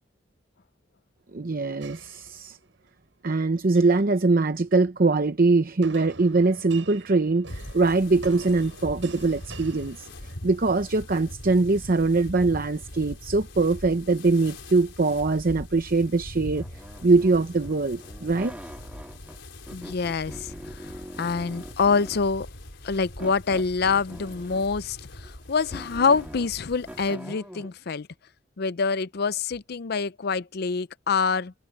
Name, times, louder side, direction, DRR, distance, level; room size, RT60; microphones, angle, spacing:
voice 1, 1.3-2.6 3.2-16.6 17.0-18.5, right 3 dB, 50° right, 0.8 m, -22 dB
sound 1, 1.8-2.9 3.6-4.1 5.8-10.7, right 3 dB, 85° right, 7.9 m, -45 dB
sound 2, 7.5-27.1, left 1 dB, 85° left, 4.5 m, -42 dB
sound 3, 16.5-19.4 19.7-22.4 23.2-24.8 25.2-27.7, equal, 10° right, 1.4 m, -43 dB
voice 2, 19.7-20.8 21.2-22.5 22.8-28.1 28.6-31.5, left 5 dB, 60° left, 0.6 m, -26 dB
head